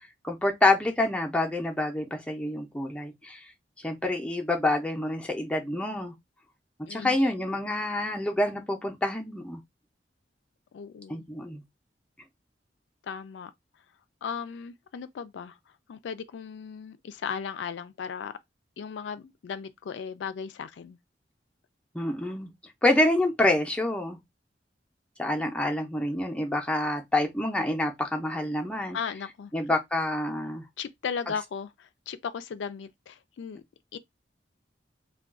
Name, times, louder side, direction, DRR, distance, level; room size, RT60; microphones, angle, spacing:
voice 1, 0.2-3.4 3.8-6.1 6.9-9.6 11.1-11.6 21.9-22.5 22.8-24.2 25.2-29.0 29.5-30.6, left 1 dB, 5° left, 0.5 m, -27 dB
voice 2, 6.9-7.5 10.7-11.3 13.0-13.5 14.2-15.6 15.9-18.4 18.8-21.0 28.9-29.5 30.8-33.6 33.9-34.0, left 6 dB, 85° left, 0.3 m, -36 dB
2.3 x 2.2 x 3.5 m
head